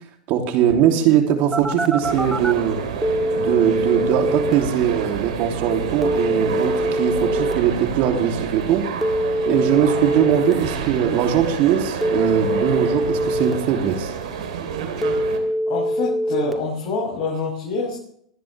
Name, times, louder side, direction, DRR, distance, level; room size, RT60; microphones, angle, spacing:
voice 1, 0.3-2.8 3.3-8.9 9.4-14.1, right 9 dB, 50° right, 3 dB, 3.0 m, -20 dB
Telephone, 1.5-2.5 3.0-4.5 6.0-7.5 9.0-10.5 12.0-13.5 15.0-16.5, equal, ahead, 2.0 m, -23 dB
sound 1, 2.0-15.4, right 7 dB, 70° right, 3.5 m, -29 dB
voice 2, 15.7-18.0, left 4 dB, 35° left, -5 dB, 7.6 m, -26 dB
28.0 x 10.5 x 3.4 m, 0.68 s
hypercardioid pair, 105°, 4 cm